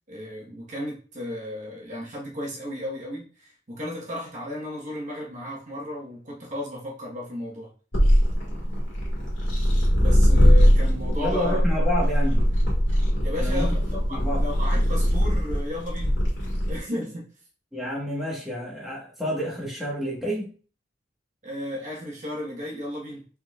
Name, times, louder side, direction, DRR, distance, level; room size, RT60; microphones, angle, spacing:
voice 1, 0.1-7.7 10.0-11.6 13.2-16.2 16.7-17.3 21.4-23.3, left 1 dB, 40° right, -3 dB, 1.2 m, -34 dB
sound 1, 7.9-16.8, equal, 85° left, 1.7 m, -21 dB
voice 2, 11.2-12.4 13.4-13.7 14.1-14.4 17.7-20.5, equal, ahead, -5 dB, 1.2 m, -29 dB
4.3 x 4.1 x 2.3 m, 0.40 s
head